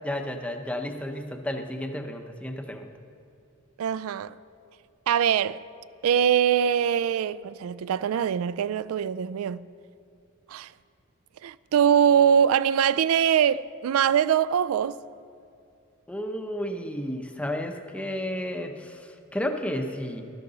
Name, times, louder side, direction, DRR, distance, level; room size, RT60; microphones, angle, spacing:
voice 1, 0.0-2.9 16.1-20.2, left 1 dB, 5° left, 0.6 m, -32 dB
voice 2, 3.8-4.4 5.1-5.6 6.0-9.7 10.5-10.7 11.4-15.0, right 8 dB, 70° right, 0.3 m, -23 dB
13.0 x 12.0 x 4.0 m
head